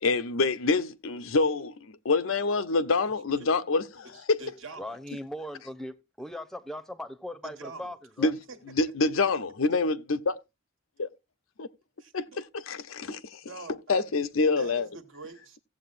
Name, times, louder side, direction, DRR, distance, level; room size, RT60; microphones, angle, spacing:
voice 1, 0.0-1.7 2.0-4.4 8.2-8.3 8.7-10.3 11.0-11.1 11.6-11.7 12.1-13.4 13.9-14.9, left 3 dB, 80° left, 0.7 m, -26 dB
voice 2, 4.1-5.0 7.4-7.9 8.5-8.6 12.0-12.4 13.4-14.1 14.5-15.6, right 3 dB, 70° right, 1.4 m, -44 dB
voice 3, 4.8-8.3, left 1 dB, ahead, 0.7 m, -39 dB
16.5 x 7.6 x 2.5 m
head